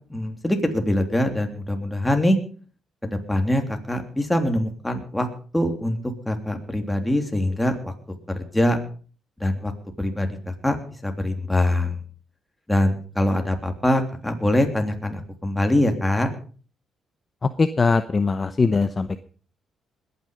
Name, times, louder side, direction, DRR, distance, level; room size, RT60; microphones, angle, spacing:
voice 1, 0.1-2.4 3.0-5.3 5.5-6.0 6.2-7.9 8.3-8.8 9.4-9.7 10.0-10.4 10.6-10.8 11.0-12.0 12.7-16.3, left 1 dB, 10° left, 4 dB, 3.2 m, -23 dB
voice 2, 17.6-19.2, left 4 dB, 30° left, 11 dB, 0.9 m, -21 dB
21.0 x 9.6 x 5.3 m, 0.41 s
cardioid pair, 90°, 0 cm